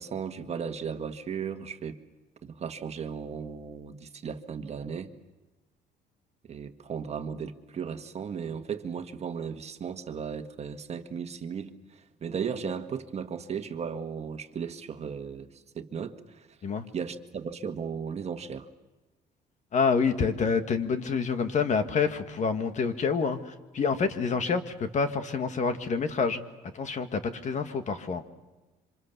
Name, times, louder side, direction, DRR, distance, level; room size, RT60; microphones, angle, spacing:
voice 1, 0.0-2.0 2.4-5.1 6.4-16.6 16.9-18.7, right 6 dB, 40° right, 7 dB, 1.7 m, -36 dB
voice 2, 19.7-26.4 26.7-28.2, left 5 dB, 45° left, 9 dB, 1.9 m, -27 dB
27.0 x 25.5 x 6.9 m, 1.2 s
cardioid pair, 110°, 17 cm